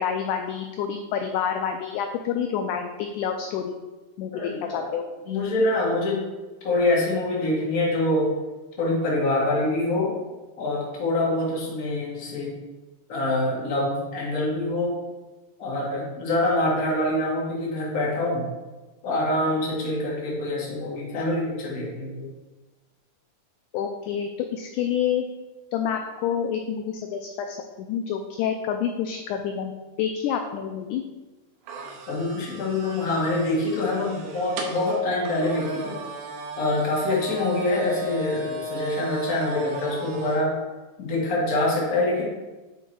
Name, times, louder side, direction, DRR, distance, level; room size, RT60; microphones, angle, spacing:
voice 1, 0.0-3.7 4.2-5.1 23.7-25.3 25.7-27.6 27.9-29.7 30.0-31.0, left 8 dB, 85° left, 5 dB, 1.8 m, -28 dB
voice 2, 4.3-5.0 5.3-6.2 6.6-8.3 8.8-10.2 10.6-12.5 13.1-15.0 15.6-18.5 19.0-22.3 32.1-36.0 36.6-40.5 41.0-42.2, left 2 dB, 35° left, -4 dB, 1.6 m, -25 dB
sound 1, 31.7-40.4, right 2 dB, 75° right, 2.4 m, -35 dB
9.1 x 3.9 x 4.6 m, 1.2 s
omnidirectional pair, 4.0 m